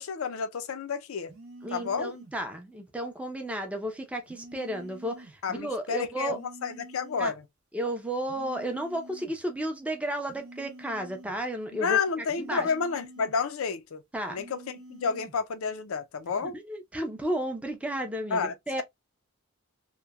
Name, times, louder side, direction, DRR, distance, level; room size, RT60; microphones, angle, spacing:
voice 1, 0.0-1.3 1.7-2.1 5.4-7.4 11.8-14.0 14.3-14.6 14.9-16.6 18.3-18.8, left 5 dB, 70° left, 0.5 m, -30 dB
sound 1, 1.3-2.4 4.3-5.4 6.3-7.4 8.3-9.4 10.2-11.4 12.3-13.4 14.2-15.4 16.2-16.6, right 1 dB, 75° right, 0.8 m, -48 dB
voice 2, 1.6-6.4 7.2-7.3 7.7-12.0 12.4-12.7 14.1-14.4 16.5-18.8, right 1 dB, 5° right, 0.5 m, -33 dB
2.9 x 2.1 x 2.2 m
head